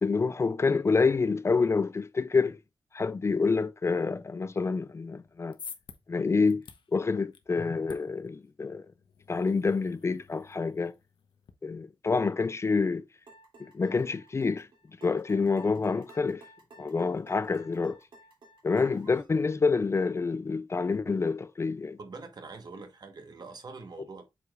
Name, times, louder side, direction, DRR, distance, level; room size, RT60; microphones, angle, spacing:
voice 1, 0.0-2.6 2.9-5.6 6.1-6.6 6.9-8.9 9.3-10.9 11.6-13.0 13.7-14.7 15.0-16.4 16.8-18.0 18.6-22.0, left 4 dB, 35° left, 0.4 m, -27 dB
sound 1, 5.2-11.5, left 6 dB, 80° left, 1.0 m, -51 dB
sound 2, 13.3-19.3, right 1 dB, 75° right, 2.9 m, -54 dB
voice 2, 22.0-24.3, right 4 dB, 55° right, 1.3 m, -44 dB
8.0 x 5.0 x 2.5 m
wide cardioid pair, 150°, 8 cm